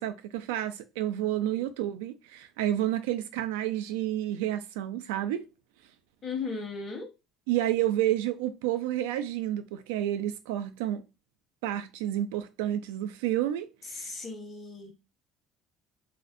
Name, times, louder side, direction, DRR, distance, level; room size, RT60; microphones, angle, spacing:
voice 1, 0.0-5.5 7.5-11.0 11.6-14.1, right 12 dB, 90° right, 0.3 m, -30 dB
voice 2, 6.2-7.1 13.8-14.9, left 4 dB, 40° left, 1.0 m, -36 dB
2.5 x 2.0 x 2.4 m
supercardioid pair, 90°, 0 cm